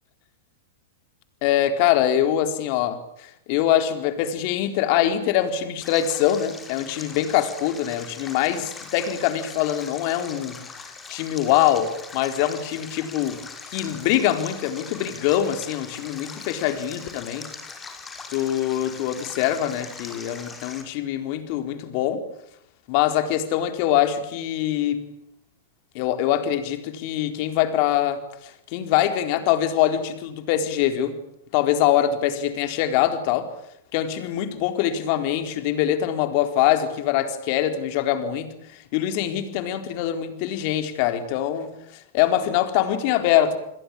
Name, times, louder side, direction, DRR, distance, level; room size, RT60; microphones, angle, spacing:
voice 1, 1.4-10.6 11.1-13.4 13.7-17.5 18.3-22.2 22.9-25.0 25.9-31.2 31.5-33.5 33.9-43.6, left 11 dB, 50° left, 9 dB, 4.2 m, -23 dB
Stream, 5.8-20.8, left 4 dB, 15° left, 5.1 m, -41 dB
29.5 x 21.5 x 8.7 m, 0.74 s
hypercardioid pair, 130°, 0 cm